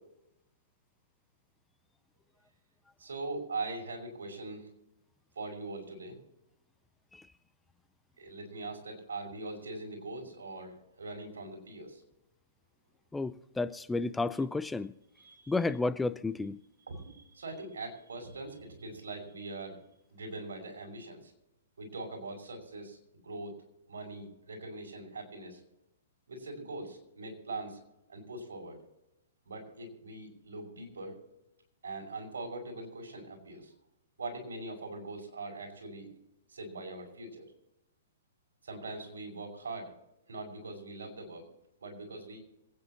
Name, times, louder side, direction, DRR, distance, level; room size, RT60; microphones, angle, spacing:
voice 1, 3.0-4.7 5.4-6.2 8.2-12.0 15.2-15.5 16.9-19.8 20.1-21.3 21.8-23.0 23.2-23.6 23.9-25.6 26.3-27.8 28.1-28.8 29.5-31.2 31.8-33.7 34.2-36.1 36.5-37.5 38.6-39.9 40.3-41.4 41.8-42.4, right 2 dB, 80° right, 1 dB, 5.7 m, -42 dB
voice 2, 13.1-14.9 15.5-16.6, left 3 dB, 5° left, 14 dB, 0.6 m, -32 dB
26.5 x 9.6 x 2.9 m, 0.90 s
hypercardioid pair, 135°, 0 cm